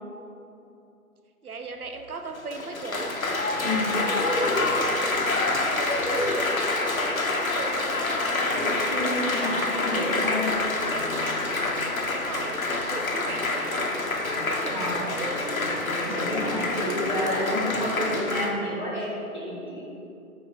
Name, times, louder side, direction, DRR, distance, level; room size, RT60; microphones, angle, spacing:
voice 1, 1.4-3.1 3.5-7.9 11.9-14.0 14.4-15.6 17.9-18.1, right 3 dB, 75° right, 5 dB, 0.9 m, -38 dB
Applause, 2.3-18.5, left 2 dB, 65° left, 1.1 m, -27 dB
voice 2, 3.6-3.9 8.4-10.5 14.7-15.1 16.0-19.8, left 1 dB, 30° right, -7 dB, 1.5 m, -30 dB
6.4 x 4.4 x 5.8 m, 2.8 s
hypercardioid pair, 175°, 44 cm